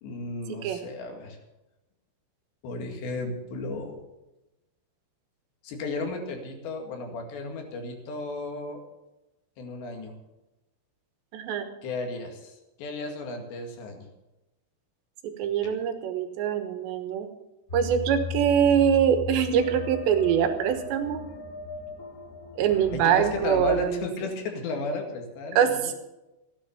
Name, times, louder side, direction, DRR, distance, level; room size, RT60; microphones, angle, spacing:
voice 1, 0.0-1.4 2.6-4.0 5.6-8.8 9.6-10.1 11.8-14.1 22.9-25.9, left 3 dB, 80° left, 3 dB, 4.3 m, -34 dB
voice 2, 11.3-11.7 15.2-17.3 17.7-21.2 22.6-23.9 24.2-24.3 25.6-25.9, right 8 dB, 90° right, 7 dB, 3.5 m, -24 dB
sound 1, 17.7-23.9, left 5 dB, 45° left, 1.1 m, -37 dB
15.5 x 9.8 x 7.0 m, 0.98 s
omnidirectional pair, 4.9 m